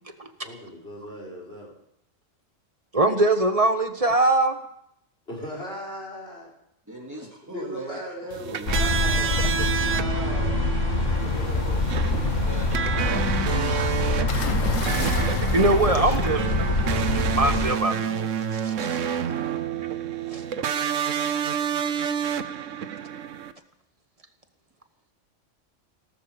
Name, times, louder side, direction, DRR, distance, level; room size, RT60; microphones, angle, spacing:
voice 1, 0.4-1.7 5.3-6.5 7.4-9.4 9.8-10.6 11.2-11.8, equal, 50° left, -2 dB, 5.7 m, -38 dB
voice 2, 2.9-4.6 9.2-9.5 12.2-12.3 13.7-13.9 14.9-19.0 20.3-20.4, right 2 dB, 30° right, 7 dB, 1.3 m, -24 dB
voice 3, 6.9-8.9 12.4-13.8, right 1 dB, 15° right, -1 dB, 3.5 m, -38 dB
sound 1, 8.3-23.5, right 8 dB, 75° right, 1.2 m, -29 dB
sound 2, 8.7-17.7, left 2 dB, 70° left, 2.4 m, -25 dB
sound 3, 14.3-17.0 18.3-18.6, left 5 dB, 85° left, 1.7 m, -35 dB
18.0 x 13.5 x 5.3 m, 0.75 s
omnidirectional pair, 1.3 m